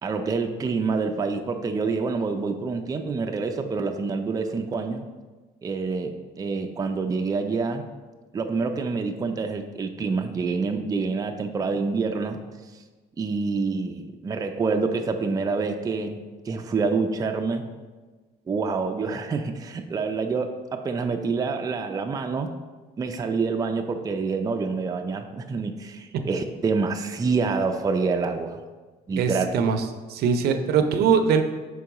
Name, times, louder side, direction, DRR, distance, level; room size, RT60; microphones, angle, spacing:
voice 1, 0.0-5.1 5.6-7.9 8.3-12.4 13.2-16.2 16.5-17.7 18.5-22.5 23.0-28.6 29.1-29.5, right 4 dB, 20° right, 5 dB, 0.4 m, -27 dB
voice 2, 29.2-31.4, right 6 dB, 70° right, 7 dB, 0.5 m, -22 dB
5.2 x 3.9 x 4.7 m, 1.3 s
cardioid pair, 110°, 17 cm